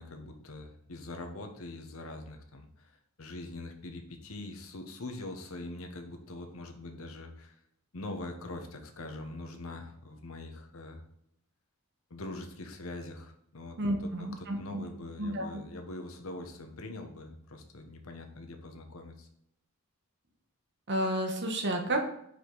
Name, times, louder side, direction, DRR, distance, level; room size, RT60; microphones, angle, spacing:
voice 1, 0.0-7.6 7.9-11.0 12.1-14.1 14.4-19.3, left 2 dB, 70° left, 4 dB, 1.0 m, -43 dB
voice 2, 13.8-14.9 15.2-15.6 20.9-22.1, right 1 dB, 55° right, 4 dB, 1.1 m, -31 dB
5.1 x 4.9 x 3.9 m, 0.74 s
head